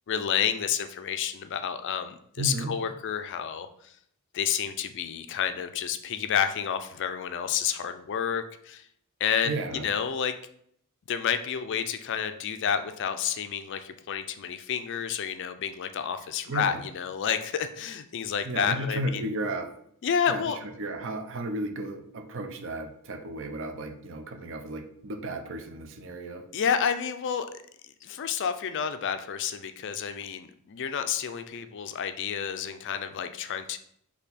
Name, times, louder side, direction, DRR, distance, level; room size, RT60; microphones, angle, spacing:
voice 1, 0.1-3.9 4.3-8.9 9.2-10.3 11.1-19.2 20.0-20.6 26.5-27.5 28.0-33.8, left 8 dB, 55° left, 10 dB, 0.4 m, -30 dB
voice 2, 2.4-2.7 9.4-9.9 16.5-16.8 18.4-19.7 20.3-26.4, right 2 dB, 60° right, 6 dB, 0.6 m, -34 dB
4.3 x 2.8 x 4.1 m, 0.67 s
head